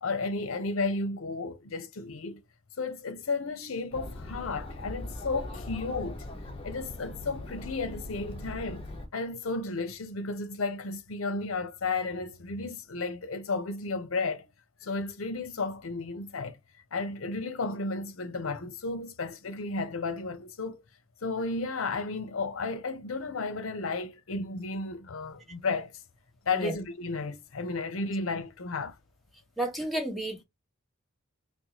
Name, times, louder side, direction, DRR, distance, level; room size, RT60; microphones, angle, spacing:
voice 1, 0.0-2.4 2.8-6.3 6.6-8.8 9.1-14.5 14.8-16.6 16.9-20.8 21.2-25.9 26.5-29.0, left 3 dB, 75° left, 0.7 m, -33 dB
Chatter, 3.9-9.1, left 1 dB, 25° left, 0.9 m, -40 dB
voice 2, 29.6-30.4, right 1 dB, ahead, 1.2 m, -31 dB
4.2 x 2.2 x 2.9 m
head